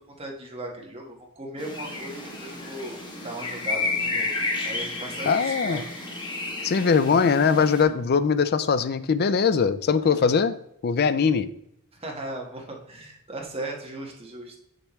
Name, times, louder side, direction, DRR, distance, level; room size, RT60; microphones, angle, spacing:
voice 1, 0.2-4.3 4.6-5.8 10.1-10.2 11.9-14.5, right 1 dB, 25° right, 0 dB, 1.4 m, -37 dB
sound 1, 1.6-7.8, left 3 dB, 20° left, 1.1 m, -31 dB
voice 2, 5.3-5.8 6.6-10.5 10.8-11.5, left 5 dB, 45° left, 13 dB, 0.4 m, -21 dB
6.6 x 5.9 x 3.1 m, 0.76 s
head